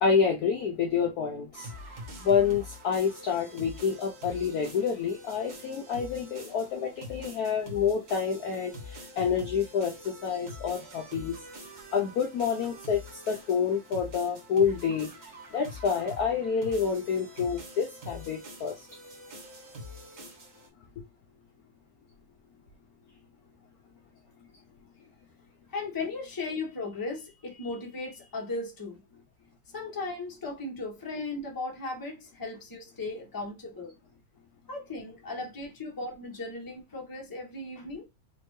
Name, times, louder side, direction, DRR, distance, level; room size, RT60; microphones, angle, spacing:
voice 1, 0.0-1.7 2.2-11.4 11.9-15.1 15.5-18.7, left 6 dB, 70° left, 0.9 m, -28 dB
sound 1, 1.5-20.7, left 1 dB, 45° right, 1.5 m, -45 dB
voice 2, 25.7-29.0 29.7-33.9 34.7-38.0, left 3 dB, 15° left, 0.8 m, -36 dB
4.3 x 2.6 x 3.1 m
omnidirectional pair, 2.2 m